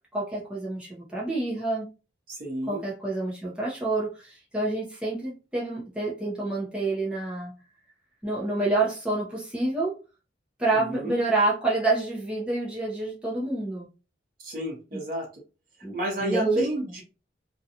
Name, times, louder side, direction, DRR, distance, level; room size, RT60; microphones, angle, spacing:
voice 1, 0.1-1.9 2.7-7.5 8.2-10.0 10.6-13.9 15.8-16.7, right 2 dB, 5° right, -6 dB, 0.6 m, -28 dB
voice 2, 2.3-2.8 10.7-11.1 14.4-15.3 15.9-17.0, right 1 dB, 50° right, 0 dB, 0.9 m, -29 dB
2.5 x 2.3 x 2.7 m, 0.33 s
head